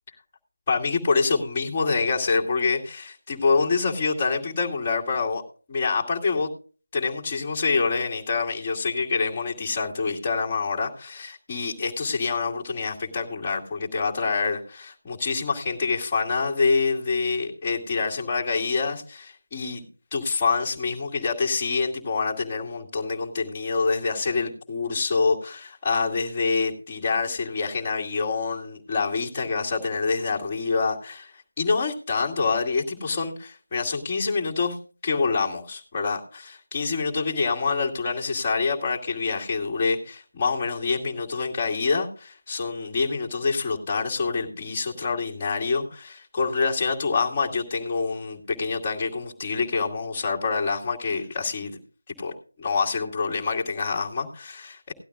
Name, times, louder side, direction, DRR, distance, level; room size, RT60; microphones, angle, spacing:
voice 1, 0.7-5.4 5.7-6.5 6.9-19.8 20.1-31.3 31.6-34.8 35.0-51.8 52.2-54.9, left 4 dB, 20° left, -2 dB, 2.3 m, -26 dB
17.5 x 12.0 x 2.4 m, 0.38 s
figure-of-eight pair, 165°, 0 cm